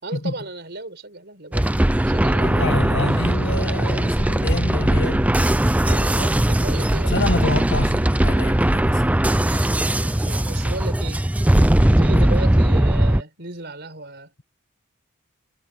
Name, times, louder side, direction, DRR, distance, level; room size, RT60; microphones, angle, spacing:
voice 1, 0.0-2.8 5.8-7.2 9.3-11.3 11.6-14.3, right 2 dB, 50° right, 5.0 m, -35 dB
sound 1, 1.5-13.2, right 1 dB, 5° right, 0.4 m, -19 dB
voice 2, 2.4-5.3 7.1-9.2 12.1-12.2, left 2 dB, 55° left, 1.6 m, -27 dB
head